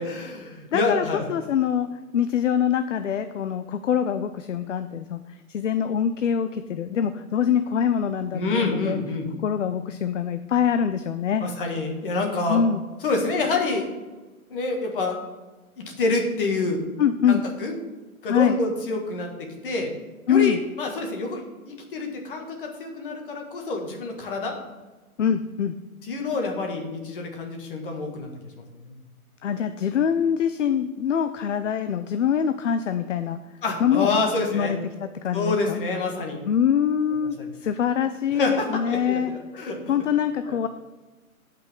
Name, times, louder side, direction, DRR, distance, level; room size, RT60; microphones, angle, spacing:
voice 1, 0.0-1.3 8.3-9.3 11.4-12.6 13.0-13.9 14.5-15.2 16.0-16.8 17.3-17.7 18.2-19.9 20.3-24.6 26.0-28.3 28.6-29.0 33.6-34.7 35.3-36.4 38.3-39.8 40.5-40.6, left 3 dB, 35° left, 2 dB, 2.0 m, -27 dB
voice 2, 0.7-1.9 2.1-9.0 9.4-11.5 12.5-12.8 17.0-17.4 18.3-18.6 20.3-20.6 25.2-25.7 29.4-33.4 33.8-34.1 34.5-35.8 36.4-39.3 39.9-40.7, left 8 dB, 55° left, 10 dB, 0.6 m, -24 dB
16.5 x 5.8 x 3.7 m, 1.2 s
hypercardioid pair, 165°, 44 cm